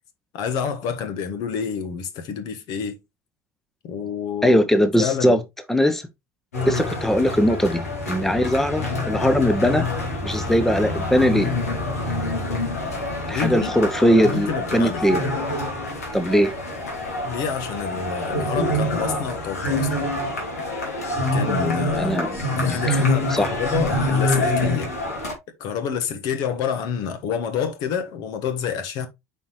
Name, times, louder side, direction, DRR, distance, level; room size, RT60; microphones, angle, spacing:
voice 1, 0.3-3.0 3.8-4.6 5.0-5.4 13.3-13.7 14.1-15.0 17.2-19.9 21.3-22.2 22.6-24.9 25.6-29.1, left 7 dB, 55° left, 1.5 m, -28 dB
voice 2, 4.4-5.4 5.7-6.1 6.7-7.8 8.1-9.9 10.2-11.5 12.9-13.0 13.3-15.2 16.1-16.5 21.9-22.4 22.7-23.0 23.3-23.5, equal, 5° left, 1.0 m, -20 dB
sound 1, 6.5-25.3, left 1 dB, 80° left, 2.8 m, -26 dB
8.3 x 4.7 x 3.1 m
figure-of-eight pair, 70°, 8 cm